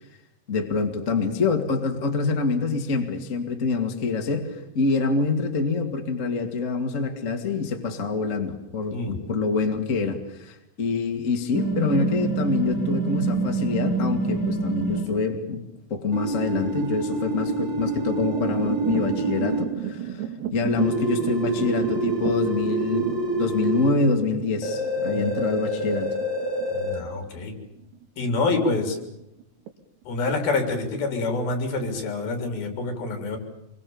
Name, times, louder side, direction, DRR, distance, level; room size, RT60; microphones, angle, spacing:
voice 1, 0.5-15.6 15.9-20.2 20.5-26.1, left 4 dB, 25° left, 3 dB, 1.9 m, -26 dB
voice 2, 8.9-9.3 25.1-25.3 26.7-27.6 28.2-29.0 30.1-33.4, left 3 dB, 60° left, 6 dB, 5.3 m, -27 dB
sound 1, 11.6-15.0 16.1-19.6 20.8-23.9 24.6-27.0, right 2 dB, 30° right, 4.2 m, -27 dB
sound 2, 15.0-16.0 16.6-17.0 17.8-28.9 29.2-29.7 30.0-30.1 30.6-31.2, right 9 dB, 80° right, 3.7 m, -35 dB
26.0 x 23.0 x 7.2 m, 0.88 s
omnidirectional pair, 4.7 m